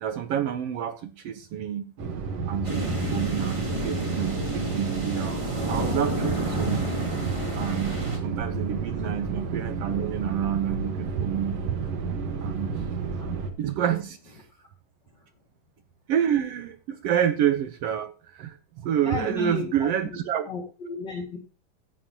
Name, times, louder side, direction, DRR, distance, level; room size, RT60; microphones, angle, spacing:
voice 1, 0.0-1.9 2.5-6.9 7.2-11.8 12.4-12.8 13.6-14.4 16.1-20.5, right 9 dB, 75° right, 8 dB, 1.4 m, -28 dB
sound 1, 2.0-13.5, right 4 dB, 55° right, 2.4 m, -31 dB
sound 2, 2.6-8.2, right 1 dB, 15° right, 1.5 m, -31 dB
voice 2, 19.0-19.9 20.4-21.4, left 5 dB, 40° left, -1 dB, 2.3 m, -33 dB
14.5 x 9.5 x 2.9 m, 0.33 s
omnidirectional pair, 3.8 m